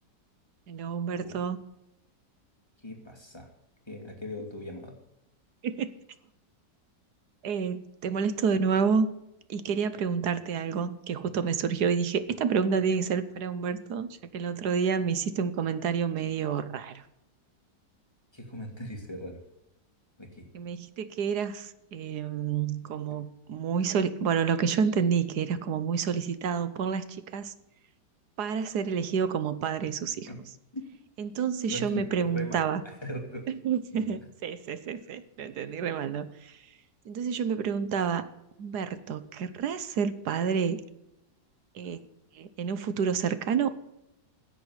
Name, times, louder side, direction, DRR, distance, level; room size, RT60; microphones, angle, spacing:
voice 1, 0.7-1.6 5.6-5.9 7.4-9.1 9.5-17.0 20.5-27.1 27.3-27.5 28.4-30.3 31.2-32.8 33.5-36.6 37.1-38.3 38.6-40.8 41.7-42.0 42.3-43.7, right 6 dB, 70° right, 13 dB, 1.4 m, -29 dB
voice 2, 2.8-3.5 3.9-4.9 18.3-19.4 20.2-20.5 30.3-30.4 30.7-30.8 31.7-33.4 33.9-34.0, left 1 dB, 15° left, 2 dB, 2.4 m, -39 dB
10.5 x 7.8 x 9.6 m, 0.88 s
omnidirectional pair, 1.9 m